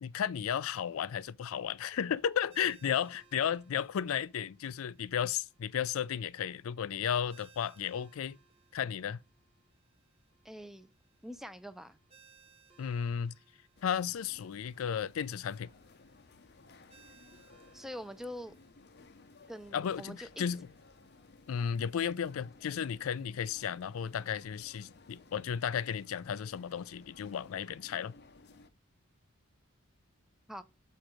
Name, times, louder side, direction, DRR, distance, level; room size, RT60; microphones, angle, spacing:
voice 1, 0.0-8.4 8.7-9.2 12.8-13.4 13.8-15.7 19.7-20.7 21.5-28.1, left 8 dB, 85° left, 0.4 m, -34 dB
Ringtone, 2.5-21.6, right 6 dB, 30° right, 1.2 m, -66 dB
voice 2, 10.4-10.9 11.2-12.0 17.7-18.5 19.5-20.5 30.5-30.6, equal, ahead, 0.5 m, -44 dB
sound 1, 13.8-28.7, left 3 dB, 55° left, 0.7 m, -58 dB
6.4 x 4.5 x 4.9 m
head